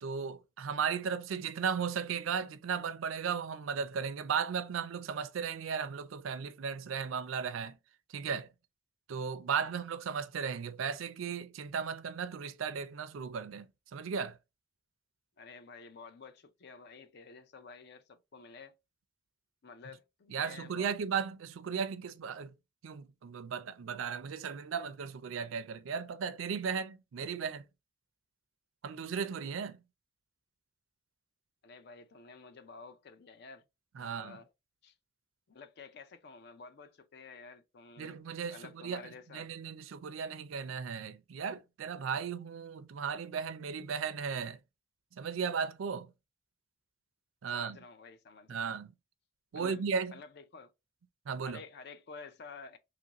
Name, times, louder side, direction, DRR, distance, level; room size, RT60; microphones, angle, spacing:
voice 1, 0.0-7.8 8.1-8.5 9.1-14.4 20.3-22.5 22.8-27.6 28.8-29.8 34.0-34.4 38.0-44.6 45.1-46.1 47.4-47.8 48.5-48.9 49.5-50.1 51.3-51.6, right 6 dB, 90° right, 0.4 m, -36 dB
voice 2, 15.4-18.8 19.6-20.9 31.6-33.6 34.0-34.5 34.8-34.9 35.5-38.2 38.5-39.5 47.5-48.7 49.5-50.7 51.4-52.8, left 4 dB, 55° left, 0.5 m, -51 dB
3.0 x 2.5 x 2.9 m
head